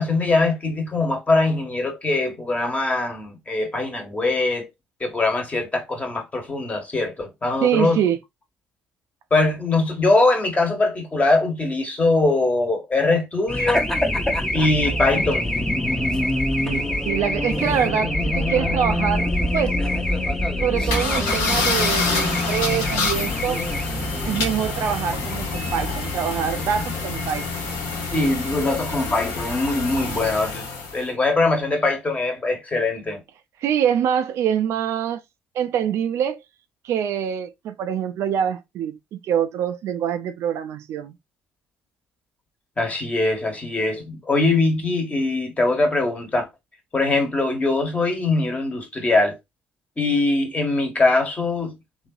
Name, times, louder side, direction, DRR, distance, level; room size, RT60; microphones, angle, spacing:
voice 1, 0.0-4.7 5.0-8.0 9.3-13.9 14.5-15.5 28.1-30.6 30.9-33.2 42.8-46.5 46.9-49.4 50.0-51.7, left 2 dB, 25° left, 1.3 m, -22 dB
voice 2, 7.6-8.2 16.6-19.8 20.6-23.6 24.2-27.5 33.6-35.2 35.6-36.4 36.8-41.1, right 9 dB, 60° right, 0.4 m, -25 dB
Race car auto racing / Alarm, 13.5-30.4, left 1 dB, 10° left, 0.9 m, -26 dB
sound 1, 20.9-31.0, left 4 dB, 80° left, 1.0 m, -27 dB
3.0 x 2.7 x 2.3 m
hypercardioid pair, 55°, 5 cm